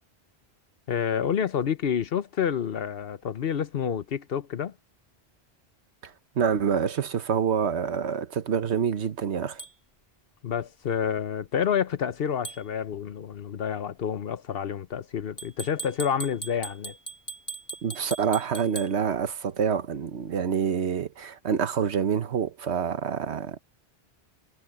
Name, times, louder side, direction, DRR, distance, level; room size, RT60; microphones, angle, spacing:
voice 1, 0.9-4.7 10.4-16.9, left 8 dB, 65° left, 1.0 m, -28 dB
voice 2, 6.0-9.6 17.8-23.6, right 7 dB, 90° right, 1.3 m, -27 dB
sound 1, 9.6-9.7 12.4-12.6 15.4-18.9, right 3 dB, 15° left, 2.1 m, -39 dB
omnidirectional pair, 1.1 m